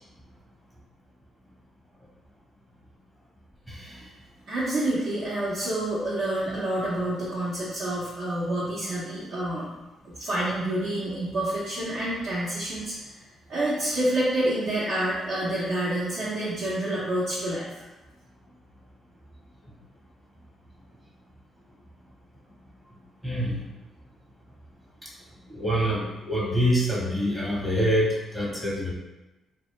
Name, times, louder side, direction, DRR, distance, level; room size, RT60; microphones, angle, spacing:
voice 1, 4.5-9.7 10.0-13.2 13.5-17.9, right 1 dB, 70° right, -10 dB, 0.6 m, -28 dB
voice 2, 23.2-23.5 25.5-28.1 28.3-28.9, equal, 15° right, -5 dB, 0.8 m, -25 dB
2.1 x 2.1 x 3.0 m, 1.1 s
cardioid pair, 90°, 0 cm